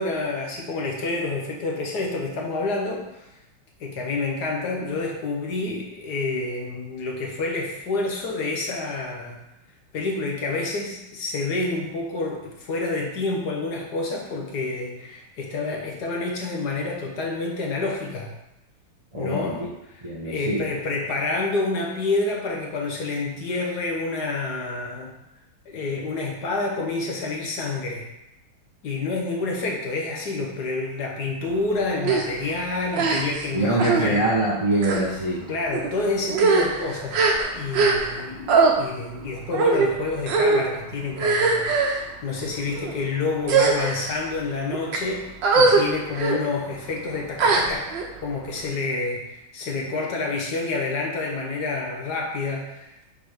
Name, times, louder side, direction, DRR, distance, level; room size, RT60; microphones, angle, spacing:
voice 1, 0.0-3.3 3.8-9.4 9.9-18.3 19.1-19.6 20.2-25.1 25.7-28.1 28.8-34.2 35.5-47.9 48.2-53.0, left 3 dB, 60° left, 0 dB, 1.3 m, -28 dB
voice 2, 19.1-19.7 20.0-20.6 33.5-35.5, right 2 dB, 30° right, -5 dB, 0.5 m, -24 dB
sound 1, 32.0-32.3 32.9-33.5 33.8-34.1 34.8-35.0 35.7-35.9 36.3-38.2 38.5-38.7 39.5-39.9 40.3-40.6 41.2-42.0 42.7-42.9 43.4-44.1 44.7-45.0 45.4-45.8 46.1-46.4 47.4-48.0, right 4 dB, 65° right, 1.5 m, -20 dB
7.0 x 3.9 x 5.0 m, 0.90 s
omnidirectional pair, 2.3 m